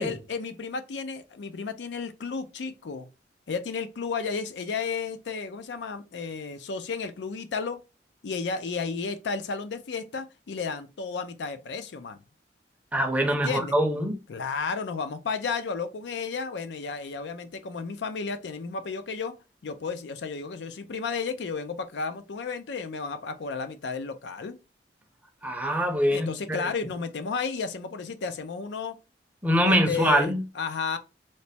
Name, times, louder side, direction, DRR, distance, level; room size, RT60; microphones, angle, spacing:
voice 1, 0.0-3.1 3.5-7.8 8.2-12.2 13.3-13.8 14.3-19.3 19.6-24.5 26.1-29.0 29.6-31.0, left 5 dB, 80° left, 0.4 m, -33 dB
voice 2, 12.9-14.1 25.4-26.6 29.4-30.4, equal, 10° right, 0.5 m, -24 dB
3.2 x 2.0 x 4.1 m
head